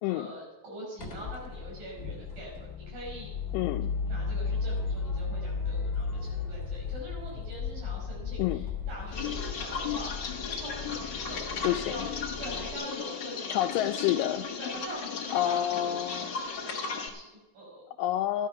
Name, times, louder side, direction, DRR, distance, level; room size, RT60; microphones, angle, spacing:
voice 1, 0.1-3.3 4.0-10.1 10.6-12.1 12.4-14.2 14.6-17.8, right 1 dB, 80° right, -3 dB, 7.1 m, -44 dB
sound 1, 1.0-12.7, left 5 dB, 30° left, 2.4 m, -35 dB
voice 2, 3.5-3.9 8.4-8.7 11.6-12.1 13.5-14.5 15.3-16.3 18.0-18.5, left 13 dB, 85° left, 3 dB, 2.2 m, -28 dB
sound 2, 9.1-17.1, left 5 dB, 55° left, 1.2 m, -35 dB
14.0 x 11.0 x 5.7 m, 1.1 s
omnidirectional pair, 3.9 m